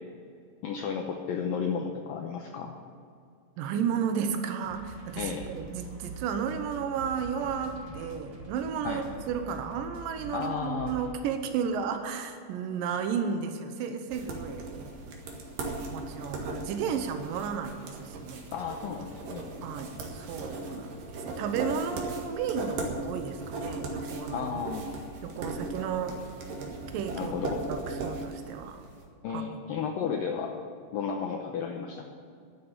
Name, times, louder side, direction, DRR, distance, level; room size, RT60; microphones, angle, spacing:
voice 1, 0.6-2.7 5.2-5.4 8.8-9.0 10.3-10.9 18.5-19.5 24.3-24.9 27.2-27.6 29.2-30.5 30.9-32.1, left 6 dB, 85° left, 3 dB, 2.0 m, -33 dB
voice 2, 3.6-14.9 15.7-18.4 19.6-24.6 25.2-26.2 26.9-27.3 27.7-28.8 29.3-29.4, right 7 dB, 85° right, 6 dB, 1.9 m, -33 dB
sound 1, 4.6-11.1, right 3 dB, 40° right, 1.8 m, -45 dB
sound 2, 14.1-28.9, right 2 dB, 55° right, 2.9 m, -38 dB
11.5 x 10.0 x 9.7 m, 2.3 s
omnidirectional pair, 5.2 m